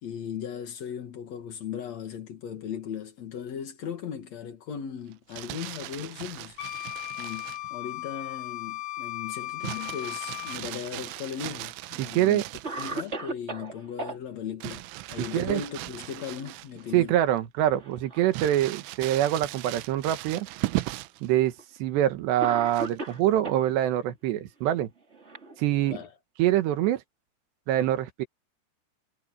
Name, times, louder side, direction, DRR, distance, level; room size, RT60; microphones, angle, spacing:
voice 1, 0.0-12.4 12.8-14.8 15.1-17.1 25.9-26.1, left 8 dB, 60° left, 1.9 m, -37 dB
Crumpling crinkling, 5.1-7.7 9.6-13.2 14.6-17.0 17.4-17.5 18.3-21.3 22.7-23.2, right 19 dB, 85° right, 3.3 m, -37 dB
Wind instrument woodwind instrument, 6.6-10.6, left 16 dB, 80° left, 1.8 m, -36 dB
Cough, 10.9-11.7 12.2-12.3 12.6-14.2 16.0-16.5 16.8-16.9 17.7-18.4 19.2-19.3 20.4-20.5 21.6-21.8 22.4-23.7 24.6-26.1, right 2 dB, 45° right, 0.8 m, -38 dB
voice 2, 12.0-12.4 15.2-15.6 16.9-20.5 21.2-21.5 21.8-24.9 25.6-26.0 26.4-27.0 27.7-28.3, right 13 dB, 70° right, 3.3 m, -25 dB
omnidirectional pair, 5.6 m